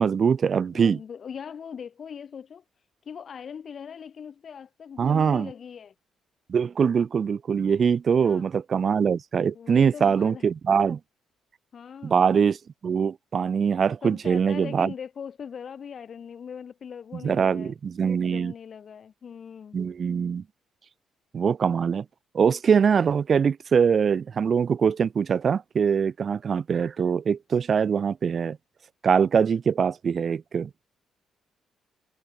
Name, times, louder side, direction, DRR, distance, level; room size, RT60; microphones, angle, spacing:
voice 1, 0.0-1.0 5.0-5.5 6.5-11.0 12.0-12.6 12.8-14.9 17.2-18.5 19.7-20.4 21.3-22.0 22.3-28.6 29.0-30.7, right 6 dB, 50° right, 0.5 m, -23 dB
voice 2, 0.7-2.6 3.1-5.9 8.1-8.5 9.5-10.4 11.7-12.2 14.0-17.7 18.2-19.8, left 7 dB, 50° left, 0.7 m, -40 dB
cardioid pair, 90°, 0 cm